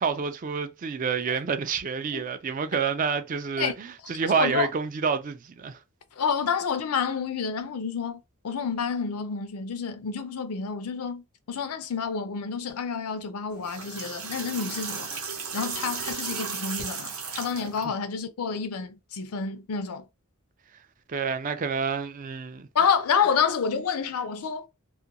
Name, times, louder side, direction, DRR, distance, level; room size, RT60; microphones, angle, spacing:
voice 1, 0.0-5.8 21.1-22.7, right 5 dB, 35° right, 0.3 m, -28 dB
voice 2, 4.4-4.7 6.2-15.1 15.5-20.0 22.7-24.7, left 6 dB, 85° left, 0.5 m, -29 dB
sound 1, 13.5-17.8, right 5 dB, 85° right, 0.8 m, -35 dB
2.4 x 2.2 x 2.8 m
head